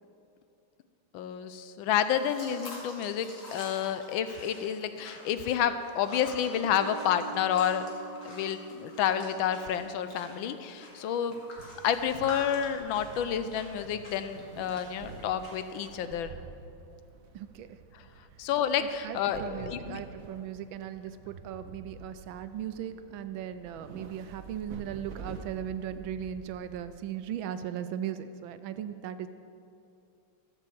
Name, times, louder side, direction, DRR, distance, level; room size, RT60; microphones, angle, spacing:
voice 1, 1.1-7.8 8.2-11.4 11.8-16.4 17.9-18.0 18.4-20.0, left 9 dB, 75° left, 11 dB, 1.3 m, -30 dB
sound 1, 2.0-16.0, left 1 dB, 55° left, 2.8 m, -48 dB
Piano, 6.6-12.0, right 5 dB, 10° left, 1.7 m, -48 dB
sound 2, 11.6-27.0, right 4 dB, 55° right, 1.1 m, -48 dB
voice 2, 17.3-17.8 18.8-29.3, right 9 dB, 75° right, 11 dB, 1.3 m, -38 dB
13.5 x 6.5 x 7.7 m, 2.7 s
omnidirectional pair, 2.3 m